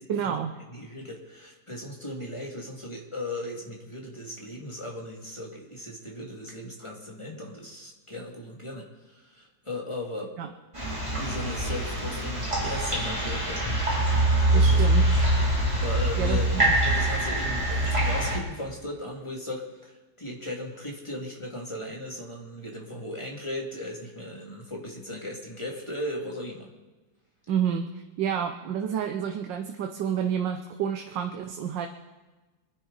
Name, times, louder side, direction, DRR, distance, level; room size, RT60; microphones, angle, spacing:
voice 1, 0.1-0.5 10.4-10.5 14.5-15.0 16.2-16.8 27.5-27.9 28.2-31.9, right 8 dB, 80° right, 5 dB, 1.5 m, -29 dB
voice 2, 0.7-10.3 11.1-13.7 14.0-15.2 15.5-16.5 16.8-26.7, left 1 dB, 15° left, -2 dB, 2.4 m, -37 dB
sound 1, 10.7-18.4, right 1 dB, 15° right, 3.0 m, -24 dB
25.5 x 10.5 x 4.0 m, 1.2 s
omnidirectional pair, 2.0 m